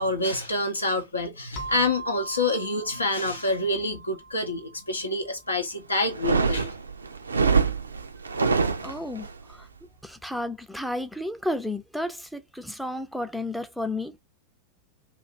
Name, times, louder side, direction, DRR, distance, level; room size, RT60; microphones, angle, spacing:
voice 1, 0.0-6.7, left 2 dB, 80° left, 0.6 m, -27 dB
sound 1, 1.6-6.0, right 3 dB, 20° left, 0.9 m, -41 dB
sound 2, 6.1-9.3, right 5 dB, 75° right, 0.3 m, -24 dB
voice 2, 8.8-9.7 10.0-14.2, left 1 dB, ahead, 0.4 m, -32 dB
2.4 x 2.3 x 2.7 m
figure-of-eight pair, 90°, 0 cm